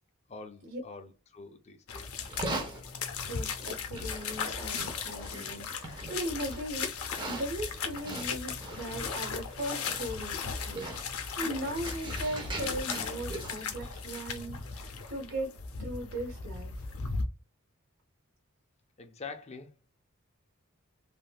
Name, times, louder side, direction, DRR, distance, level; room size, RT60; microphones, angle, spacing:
voice 1, 0.3-2.4 19.0-19.8, left 4 dB, 30° left, 0.4 m, -46 dB
sound 1, 1.9-17.3, left 5 dB, 75° left, 0.6 m, -37 dB
Livestock farm animals working animals, 2.2-14.4, right 2 dB, 20° right, 0.6 m, -43 dB
voice 2, 3.3-15.5 15.8-16.7, right 1 dB, 60° right, 1.0 m, -38 dB
3.4 x 2.7 x 2.3 m
head